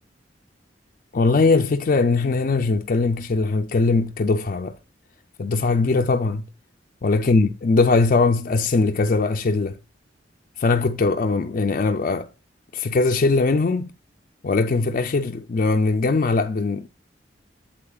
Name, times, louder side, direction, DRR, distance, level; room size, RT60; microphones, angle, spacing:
voice 1, 1.1-4.7 5.4-6.5 7.0-9.8 10.6-12.3 12.7-13.9 14.4-16.9, left 3 dB, 45° left, 0.4 m, -20 dB
8.6 x 7.4 x 2.3 m
head